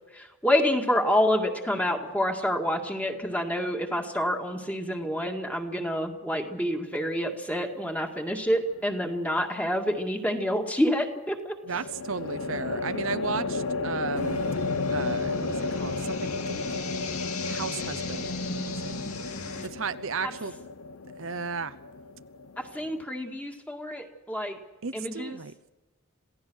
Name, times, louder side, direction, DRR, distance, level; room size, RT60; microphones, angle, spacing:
voice 1, 0.1-11.5 22.6-24.6 24.9-25.4, equal, 5° left, 3 dB, 2.0 m, -28 dB
sound 1, 8.6-9.1 11.7-23.0, left 3 dB, 75° left, 0.8 m, -33 dB
voice 2, 11.7-14.4 14.9-16.8 17.4-19.0 19.7-20.5 21.2-21.7 24.8-25.7, right 5 dB, 70° right, 12 dB, 0.8 m, -35 dB
sound 2, 14.2-19.7, left 3 dB, 90° left, 2.8 m, -35 dB
27.0 x 17.0 x 6.4 m, 1.1 s
head